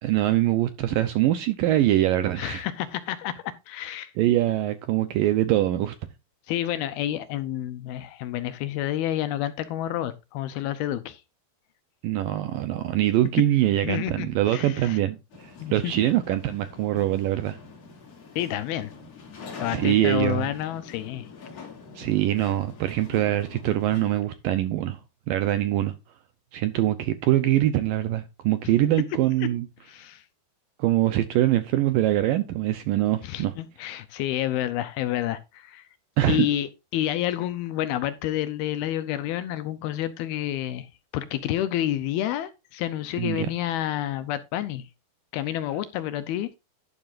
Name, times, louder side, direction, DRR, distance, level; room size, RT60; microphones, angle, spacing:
voice 1, 0.0-2.6 4.2-6.0 12.0-17.6 19.7-20.5 22.0-25.0 25.3-25.9 26.5-29.7 30.8-33.5 36.2-36.5 43.2-43.5, right 13 dB, 80° right, 2.1 m, -23 dB
voice 2, 2.4-4.1 6.5-11.2 13.8-15.0 15.6-15.9 18.4-18.9 19.6-21.3 29.4-29.5 29.9-30.2 33.2-35.8 36.3-44.9 45.3-46.5, left 12 dB, 75° left, 2.5 m, -29 dB
sound 1, 15.3-24.2, left 4 dB, 40° left, 3.2 m, -44 dB
12.0 x 11.0 x 2.6 m
omnidirectional pair, 4.8 m